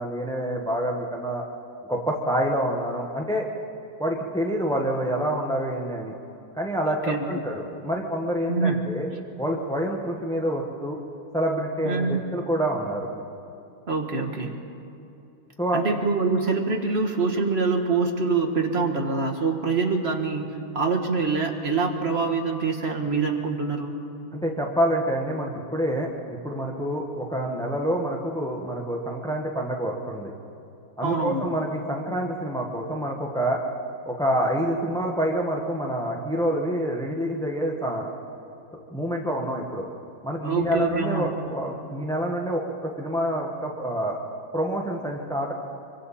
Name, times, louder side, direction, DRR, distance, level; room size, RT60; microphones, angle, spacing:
voice 1, 0.0-1.4 1.9-3.5 4.0-6.1 6.6-9.1 9.4-11.0 11.3-13.1 15.6-15.8 24.3-30.3 31.0-33.6 34.1-38.1 38.9-39.9 40.2-44.2 44.5-45.5, equal, ahead, -1 dB, 1.1 m, -27 dB
voice 2, 8.5-8.8 11.8-12.2 13.9-14.5 15.7-23.9 31.0-31.5 40.4-41.4, right 4 dB, 35° right, 1 dB, 1.7 m, -25 dB
25.5 x 24.0 x 4.3 m, 2.8 s
omnidirectional pair, 2.1 m